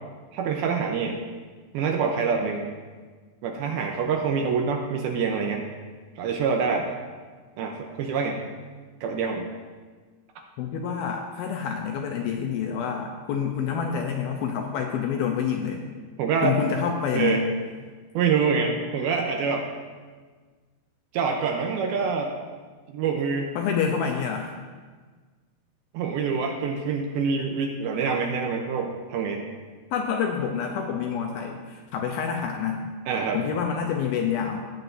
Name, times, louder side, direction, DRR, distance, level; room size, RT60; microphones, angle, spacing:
voice 1, 0.3-1.2 1.7-2.7 3.4-5.6 6.2-6.9 7.6-8.4 9.0-9.5 16.2-16.6 17.1-17.5 18.2-19.7 21.1-22.3 22.9-23.5 25.9-29.4 33.1-33.4, right 5 dB, 80° right, 2 dB, 2.4 m, -26 dB
voice 2, 10.6-15.8 16.4-17.4 23.6-24.6 29.9-32.9 33.3-34.7, left 7 dB, 80° left, 2 dB, 2.3 m, -27 dB
18.0 x 7.8 x 2.7 m, 1.4 s
omnidirectional pair, 4.9 m